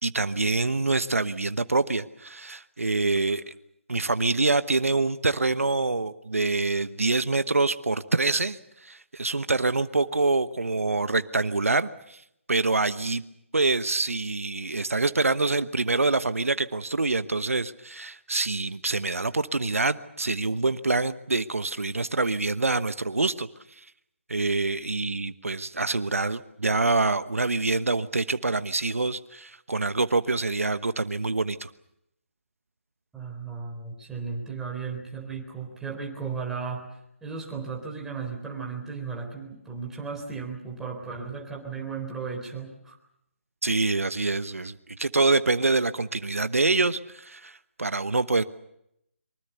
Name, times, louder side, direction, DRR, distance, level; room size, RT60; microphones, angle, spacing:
voice 1, 0.0-3.5 3.9-12.2 12.5-13.2 13.5-23.5 23.8-23.9 24.3-31.7 43.6-48.4, right 3 dB, 80° right, 13 dB, 1.1 m, -26 dB
voice 2, 33.1-36.9 37.2-43.0, right 5 dB, 5° right, 0 dB, 4.0 m, -35 dB
24.0 x 24.0 x 6.9 m, 0.77 s
figure-of-eight pair, 150°, 7 cm